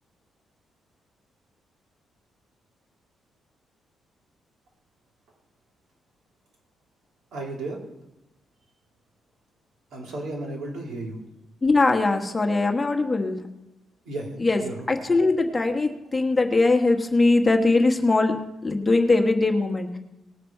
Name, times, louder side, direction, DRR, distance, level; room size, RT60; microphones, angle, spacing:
voice 1, 7.3-7.8 9.9-11.2 14.0-14.8, right 2 dB, 85° right, -1 dB, 3.2 m, -33 dB
voice 2, 11.6-13.4 14.4-14.6 14.9-18.3 18.6-20.0, left 3 dB, 15° left, 3 dB, 1.3 m, -21 dB
19.0 x 7.2 x 4.6 m, 0.91 s
cardioid pair, 145°, 0 cm